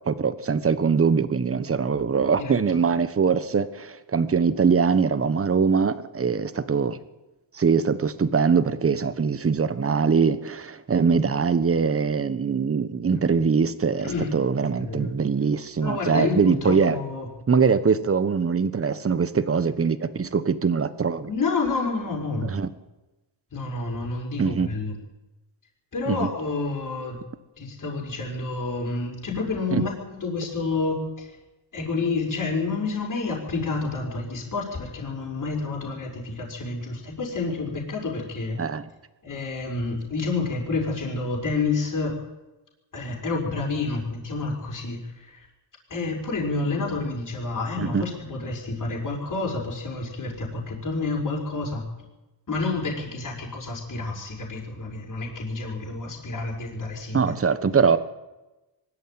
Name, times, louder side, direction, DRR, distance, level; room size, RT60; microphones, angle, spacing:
voice 1, 0.1-7.0 7.5-17.0 17.5-21.3 22.4-22.7 24.4-24.7 26.1-26.3 29.7-29.8 38.6-38.9 47.8-48.0 57.1-58.0, right 5 dB, 30° right, 13 dB, 1.3 m, -22 dB
voice 2, 14.0-14.3 14.8-15.1 15.8-17.3 21.3-22.5 23.5-24.9 25.9-27.2 27.6-31.4 31.7-38.6 39.2-42.2 42.9-45.5 45.9-51.9 52.5-57.3, left 3 dB, 40° left, -2 dB, 5.7 m, -29 dB
23.0 x 13.0 x 9.3 m, 1.0 s
wide cardioid pair, 135°, 49 cm